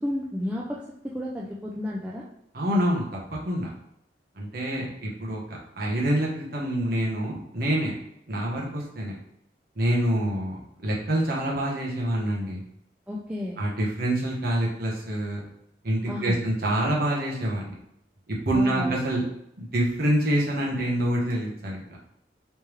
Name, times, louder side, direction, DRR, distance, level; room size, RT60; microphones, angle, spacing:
voice 1, 0.0-2.3 13.1-13.6 16.1-16.4 18.5-19.0, left 1 dB, 5° right, -5 dB, 0.4 m, -32 dB
voice 2, 2.5-3.0 3.3-3.7 4.4-7.9 8.3-9.1 9.8-12.6 13.6-15.4 15.8-17.8 18.3-19.2 19.6-21.8, right 1 dB, 60° right, -3 dB, 1.0 m, -26 dB
3.3 x 3.3 x 3.1 m, 0.77 s
head